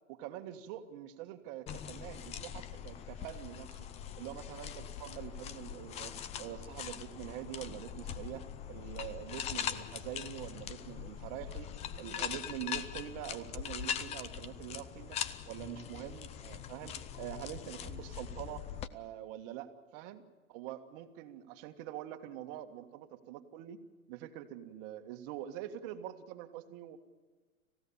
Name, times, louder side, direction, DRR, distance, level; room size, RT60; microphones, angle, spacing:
voice 1, 0.1-3.9 4.2-18.7 18.9-20.2 20.5-23.8 24.1-27.0, right 12 dB, 40° right, 6 dB, 2.1 m, -45 dB
sound 1, 1.7-18.9, left 9 dB, 15° left, 0.6 m, -42 dB
27.0 x 16.0 x 7.3 m, 1.4 s
hypercardioid pair, 135°, 42 cm